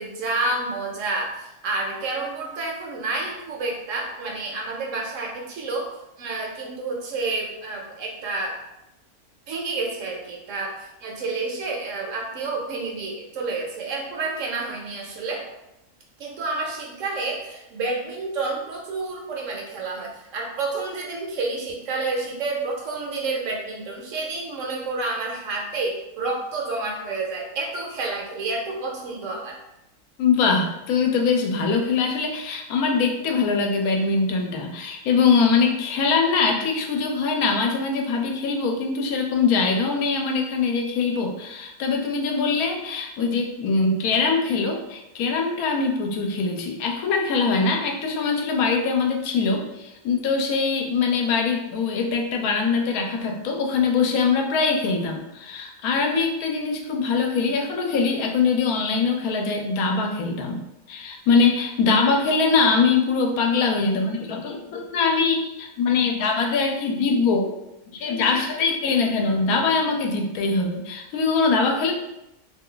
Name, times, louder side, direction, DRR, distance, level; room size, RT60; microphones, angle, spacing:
voice 1, 0.0-5.9 6.2-8.6 9.5-10.7 11.0-15.4 16.2-29.6, right 3 dB, 65° right, 0 dB, 1.0 m, -29 dB
voice 2, 30.2-60.6 60.9-67.5 67.9-71.9, left 4 dB, 85° left, 2 dB, 1.1 m, -22 dB
2.7 x 2.3 x 3.7 m, 0.90 s
omnidirectional pair, 1.5 m